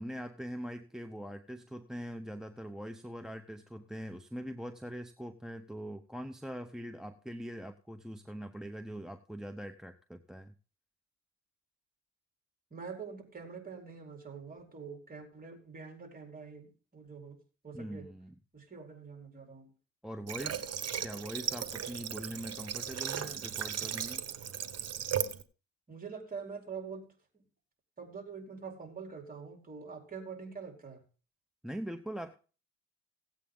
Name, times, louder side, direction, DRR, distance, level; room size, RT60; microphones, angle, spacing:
voice 1, 0.0-10.5 17.7-18.3 20.0-24.2 31.6-32.4, equal, ahead, 8 dB, 0.8 m, -42 dB
voice 2, 12.7-17.4 17.6-18.0 18.5-19.7 25.9-27.1 28.0-31.0, right 5 dB, 30° right, 2 dB, 4.5 m, -45 dB
Water / Water tap faucet, 20.3-25.4, right 9 dB, 55° right, 1.3 m, -36 dB
17.0 x 8.4 x 3.8 m, 0.36 s
cardioid pair, 90°, 30 cm